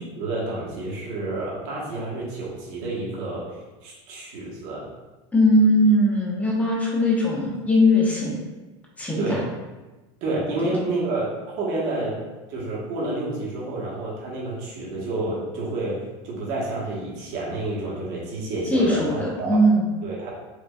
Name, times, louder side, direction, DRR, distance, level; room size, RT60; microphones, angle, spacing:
voice 1, 0.0-4.9 9.2-9.4 10.2-12.2 12.5-16.0 16.2-19.6 20.0-20.3, right 2 dB, 60° right, -5 dB, 1.3 m, -29 dB
voice 2, 5.3-8.4 9.0-9.4 10.8-10.9 18.7-19.8, equal, 10° left, -3 dB, 0.7 m, -20 dB
4.9 x 2.3 x 2.4 m, 1.2 s
supercardioid pair, 145°, 15 cm